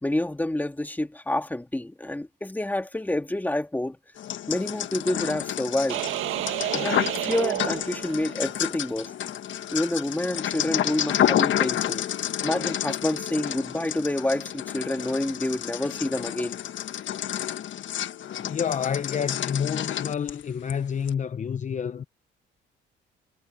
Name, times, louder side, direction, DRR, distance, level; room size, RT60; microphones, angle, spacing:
voice 1, 0.0-4.0 4.5-6.0 6.7-9.1 9.7-12.0 12.4-16.6, left 1 dB, 10° left, 2.2 m, -28 dB
sound 1, 4.2-20.7 21.1-21.2, left 11 dB, 70° left, 1.5 m, -30 dB
sound 2, 5.9-8.5, right 13 dB, 90° right, 1.8 m, -30 dB
voice 2, 18.4-22.0, left 7 dB, 40° left, 0.7 m, -29 dB
cardioid pair, 90°, 20 cm